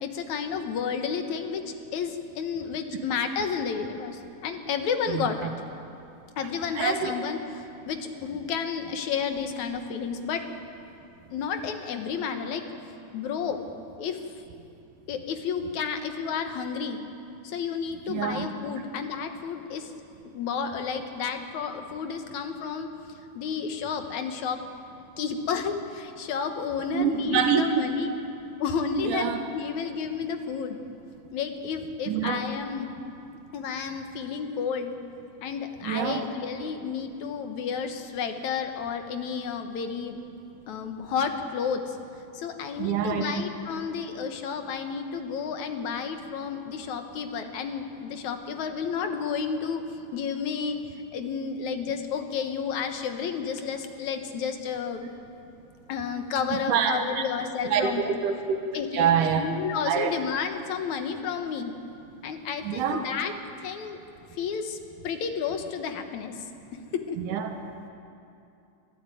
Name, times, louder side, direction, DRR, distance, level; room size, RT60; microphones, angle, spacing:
voice 1, 0.0-5.5 6.4-10.4 11.3-12.6 13.1-13.6 14.0-14.2 15.1-17.0 17.4-19.9 20.3-22.9 23.4-24.6 25.2-28.1 28.6-30.8 31.3-32.9 33.5-34.9 35.4-40.2 40.7-42.0 42.3-49.8 50.1-50.8 51.1-55.1 55.9-58.1 58.7-59.1 59.4-61.7 62.2-63.3 63.6-64.0 64.3-64.8 65.0-66.4 66.9-67.2, left 6 dB, 70° left, 6 dB, 2.6 m, -31 dB
voice 2, 6.8-7.1 18.1-18.5 26.9-27.6 28.9-29.4 32.1-32.4 35.8-36.2 42.8-43.3 56.5-57.2 57.7-57.9 58.2-58.6 58.9-59.5 59.9-60.1 62.6-63.0 67.2-67.5, right 8 dB, 90° right, 5 dB, 2.7 m, -26 dB
25.0 x 14.0 x 9.2 m, 2.6 s
omnidirectional pair, 3.6 m